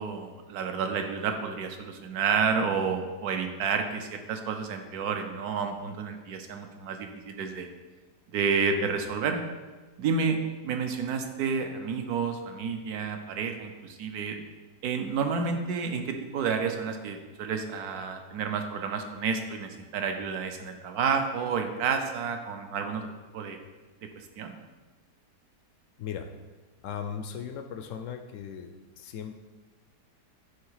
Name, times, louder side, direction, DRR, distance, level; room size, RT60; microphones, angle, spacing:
voice 1, 0.0-7.7 8.3-9.4 10.0-10.4 10.6-14.4 14.8-23.6 24.2-24.5, right 5 dB, 70° right, 6 dB, 1.2 m, -30 dB
voice 2, 26.0-26.3 26.8-29.5, left 7 dB, 75° left, 7 dB, 0.7 m, -38 dB
9.5 x 3.4 x 4.7 m, 1.3 s
omnidirectional pair, 1.8 m